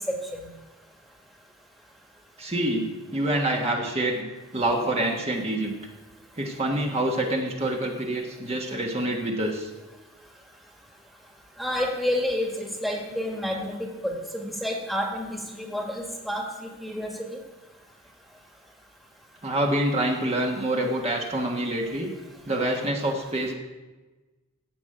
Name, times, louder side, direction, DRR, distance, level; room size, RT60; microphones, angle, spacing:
voice 1, 2.4-4.2 4.5-5.7 6.3-9.7 19.4-22.1 22.5-23.5, right 1 dB, 30° right, 0 dB, 1.4 m, -26 dB
voice 2, 11.6-17.4, left 1 dB, ahead, 0 dB, 1.7 m, -30 dB
15.0 x 5.2 x 9.0 m, 1.2 s
head